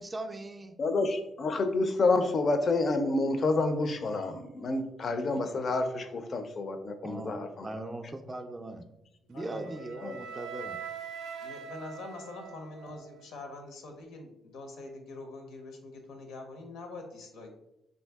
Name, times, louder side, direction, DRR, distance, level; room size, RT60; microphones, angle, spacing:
voice 1, 0.0-0.8 7.0-8.9 9.3-10.8, right 2 dB, 20° right, 5 dB, 0.3 m, -39 dB
voice 2, 0.8-7.7 10.0-10.2, left 3 dB, 45° left, 8 dB, 0.4 m, -29 dB
voice 3, 9.3-10.0 11.4-17.5, left 2 dB, 85° left, 4 dB, 0.7 m, -44 dB
Wind instrument woodwind instrument, 9.4-13.4, right 7 dB, 90° right, 0.4 m, -43 dB
2.6 x 2.6 x 3.4 m, 0.84 s
cardioid pair, 90°, 0 cm